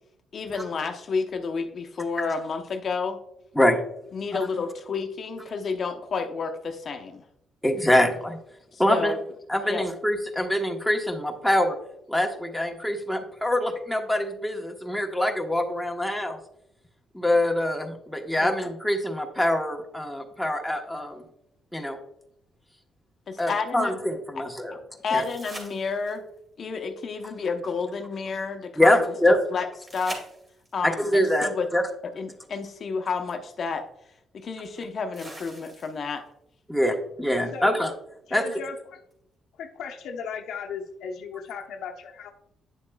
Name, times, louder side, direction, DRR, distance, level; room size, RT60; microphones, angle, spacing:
voice 1, 0.3-3.2 4.1-7.2 8.7-9.2 9.6-9.8 18.4-18.5 23.3-23.9 24.4-24.5 25.0-26.2 26.6-29.0 29.5-29.7 29.9-30.2 30.7-31.7 32.0-33.9 34.3-36.2, left 5 dB, 50° left, 5 dB, 0.8 m, -30 dB
voice 2, 7.6-8.4 8.8-9.2 9.5-11.8 12.1-16.4 17.1-21.2 21.7-22.0 23.4-24.8 25.1-25.2 28.8-29.4 30.8-31.9 36.7-37.9 38.3-38.4, left 1 dB, ahead, 2 dB, 1.2 m, -24 dB
sound 1, 25.1-26.4 29.9-30.9 32.8-32.9 35.1-36.2 39.1-39.2, right 1 dB, 25° right, 2.4 m, -42 dB
voice 3, 38.3-39.0 39.6-42.3, left 6 dB, 80° left, 3 dB, 0.9 m, -36 dB
9.1 x 7.1 x 2.3 m, 0.76 s
cardioid pair, 90°, 0 cm